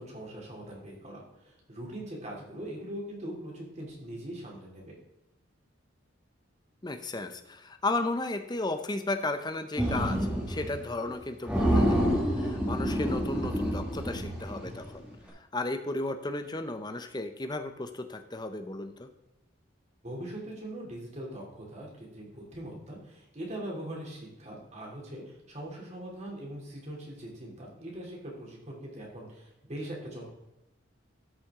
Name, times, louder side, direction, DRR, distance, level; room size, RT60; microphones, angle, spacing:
voice 1, 0.0-5.0 20.0-30.2, right 1 dB, 35° right, -2 dB, 3.0 m, -41 dB
voice 2, 6.8-12.0 12.3-15.0 15.3-19.1, left 2 dB, 20° left, 8 dB, 0.7 m, -34 dB
sound 1, 9.8-10.8 11.1-11.2 11.5-14.9, equal, 5° right, 1.8 m, -28 dB
13.0 x 5.9 x 3.7 m, 0.94 s
head